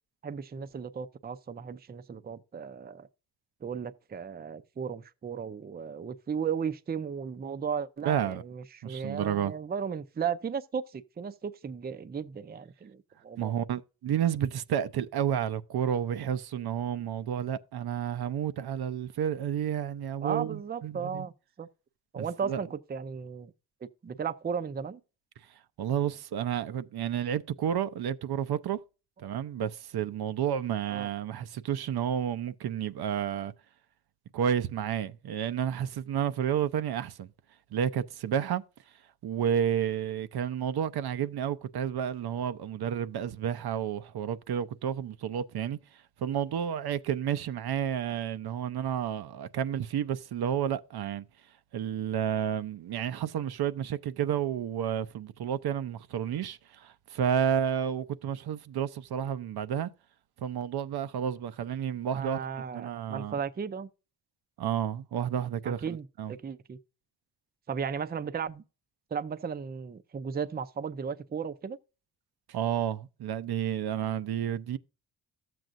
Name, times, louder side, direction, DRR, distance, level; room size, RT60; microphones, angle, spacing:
voice 1, 0.2-3.1 3.6-13.0 13.2-13.5 20.2-21.3 21.6-21.7 22.1-23.5 24.0-25.0 30.9-31.1 62.1-63.9 65.6-66.8 67.7-68.6 69.1-71.8, right 6 dB, 25° right, 0.5 m, -35 dB
voice 2, 8.0-8.4 8.8-9.5 13.4-21.3 22.2-22.6 25.8-28.8 29.2-33.5 34.3-37.3 37.7-38.6 39.2-51.2 51.7-59.9 60.4-62.4 62.7-63.4 64.6-66.3 72.5-74.8, right 9 dB, 65° right, 0.6 m, -31 dB
13.0 x 7.7 x 2.5 m
cardioid pair, 95°, 40 cm